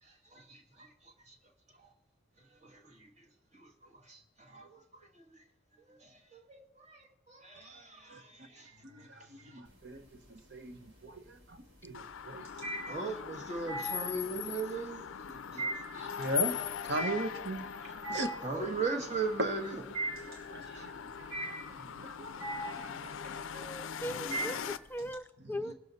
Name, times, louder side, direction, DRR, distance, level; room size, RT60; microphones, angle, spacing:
voice 1, 0.0-1.4 1.8-1.9 2.4-3.2 3.5-5.4 5.9-9.6 12.9-15.0 15.5-16.1 17.8-17.9 18.4-19.8 20.6-20.9 24.2-24.5 25.6-25.7, right 3 dB, 35° right, 1.5 m, -40 dB
voice 2, 8.8-12.5 15.3-15.8 16.1-18.4 19.4-19.5 20.3-23.4 24.0-24.2 25.4-25.7, right 2 dB, 55° right, 0.9 m, -40 dB
sound 1, 9.7-10.3 10.7-25.1, right 2 dB, 80° right, 3.4 m, -40 dB
sound 2, 11.9-24.8, left 9 dB, 70° left, 0.4 m, -41 dB
voice 3, 23.5-25.7, equal, 10° left, 0.3 m, -40 dB
20.5 x 7.0 x 4.0 m
head